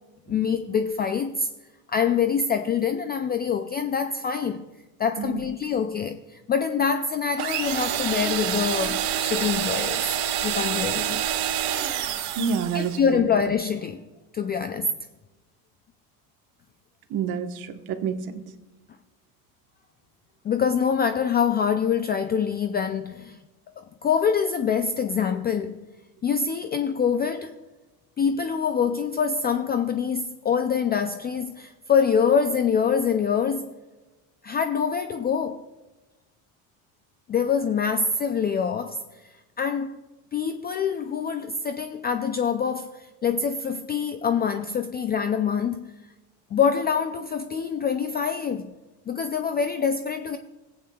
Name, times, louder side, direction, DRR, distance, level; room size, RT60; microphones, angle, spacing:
voice 1, 0.3-1.5 1.9-4.6 5.0-10.1 10.4-11.2 12.7-14.0 14.3-14.9 20.4-23.4 23.8-25.8 26.2-27.6 28.2-33.7 34.4-35.6 37.3-39.0 39.6-39.9 40.3-45.8 46.5-48.7 49.1-50.4, left 6 dB, 25° left, 0.3 m, -25 dB
sound 1, 7.4-13.0, right 10 dB, 75° right, 1.5 m, -27 dB
voice 2, 12.4-13.0 17.1-18.3, right 6 dB, 50° right, 1.2 m, -28 dB
18.0 x 8.6 x 2.3 m
supercardioid pair, 110°, 45 cm